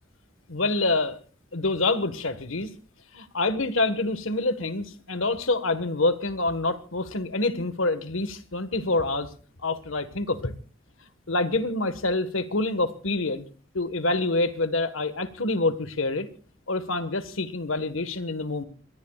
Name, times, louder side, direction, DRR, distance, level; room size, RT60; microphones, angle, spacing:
voice 1, 0.5-1.2 1.5-2.7 3.1-9.3 9.6-10.5 11.3-13.4 13.7-16.3 16.7-18.6, left 2 dB, 90° left, 12 dB, 1.6 m, -26 dB
26.0 x 20.0 x 2.4 m, 0.36 s
head